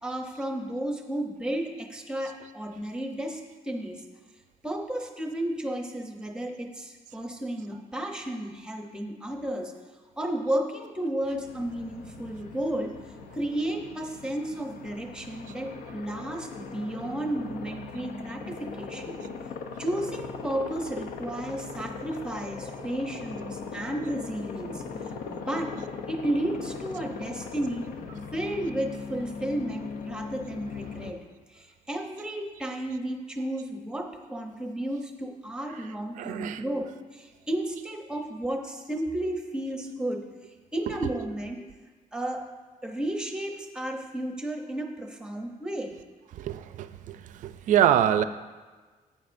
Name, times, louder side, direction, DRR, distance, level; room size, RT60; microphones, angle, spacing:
voice 1, 0.0-4.0 4.6-9.7 10.2-12.9 13.3-19.2 19.8-24.8 25.3-25.8 26.1-27.9 28.3-31.2 31.5-40.2 40.7-41.7 42.1-42.4 42.8-46.0, right 1 dB, 5° right, 2 dB, 0.7 m, -33 dB
Aircraft, 11.2-31.1, left 5 dB, 85° left, 0.7 m, -40 dB
voice 2, 36.2-36.6 40.9-41.3 46.4-48.2, right 10 dB, 60° right, 11 dB, 0.4 m, -26 dB
11.5 x 8.3 x 2.6 m, 1.3 s
cardioid pair, 170°, 14 cm